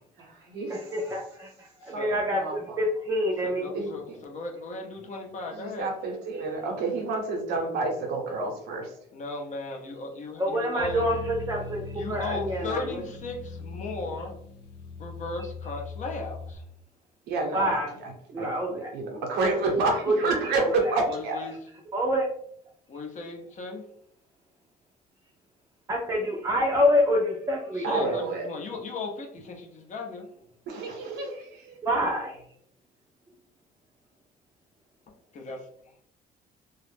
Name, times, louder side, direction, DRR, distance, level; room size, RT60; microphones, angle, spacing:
voice 1, 0.2-0.7 1.9-2.1 2.3-2.8 3.7-4.2 5.5-8.9 17.3-18.1 18.4-21.4 27.8-28.5 30.7-31.8, right 3 dB, 85° right, 1 dB, 0.8 m, -29 dB
voice 2, 0.7-3.7 10.4-13.0 17.5-17.9 18.3-18.9 20.0-21.0 21.9-22.3 25.9-28.2 31.8-32.4, equal, 15° right, -2 dB, 0.5 m, -27 dB
voice 3, 1.8-2.2 3.4-5.9 9.1-11.1 11.9-14.3 15.0-16.6 21.0-21.6 22.9-23.9 27.7-30.3 35.3-35.7, left 3 dB, 45° left, 2 dB, 0.6 m, -36 dB
sound 1, 10.8-16.6, left 4 dB, 85° left, 0.4 m, -39 dB
2.3 x 2.0 x 3.2 m, 0.67 s
cardioid pair, 110°, 17 cm